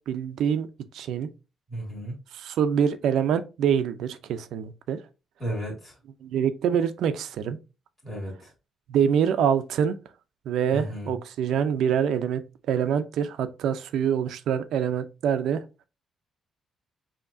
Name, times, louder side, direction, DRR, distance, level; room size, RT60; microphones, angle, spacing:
voice 1, 0.1-0.7 0.9-1.3 2.3-5.0 6.2-7.6 8.9-10.0 10.5-15.6, right 8 dB, 80° right, 0.5 m, -25 dB
voice 2, 1.7-2.2 5.4-6.0 8.0-8.5 10.7-11.2, right 1 dB, 15° left, 2.2 m, -33 dB
7.0 x 2.9 x 2.6 m
cardioid pair, 155°, 0 cm